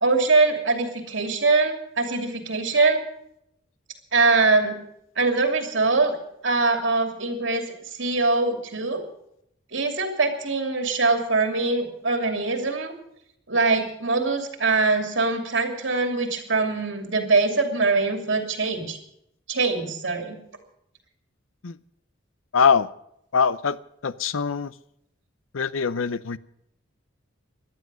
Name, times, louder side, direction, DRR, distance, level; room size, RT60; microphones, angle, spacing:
voice 1, 0.0-3.0 4.1-4.8 5.2-6.2 6.4-7.7 8.0-9.0 9.7-12.9 13.5-19.0 19.5-20.4, right 3 dB, 70° right, 4 dB, 2.8 m, -23 dB
voice 2, 22.5-22.9 23.3-23.8 24.0-24.7 25.5-26.4, left 6 dB, 90° left, 17 dB, 0.6 m, -22 dB
17.5 x 12.0 x 6.3 m, 0.76 s
head